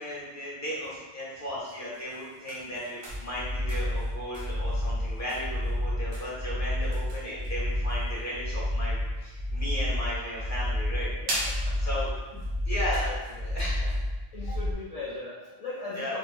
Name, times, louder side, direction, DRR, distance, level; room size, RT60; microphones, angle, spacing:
voice 1, 0.0-11.1 11.8-12.1 12.6-13.1 13.5-14.0 14.4-14.5 15.9-16.2, equal, 15° left, -8 dB, 1.3 m, -35 dB
sound 1, 1.5-14.1, right 1 dB, 65° right, 1.0 m, -43 dB
sound 2, 3.1-14.7, left 1 dB, 5° right, 1.0 m, -30 dB
voice 2, 11.2-11.8 12.3-12.4 12.9-13.6 14.3-16.2, left 2 dB, 45° left, -7 dB, 0.5 m, -39 dB
3.6 x 3.4 x 2.4 m, 1.2 s
omnidirectional pair, 1.1 m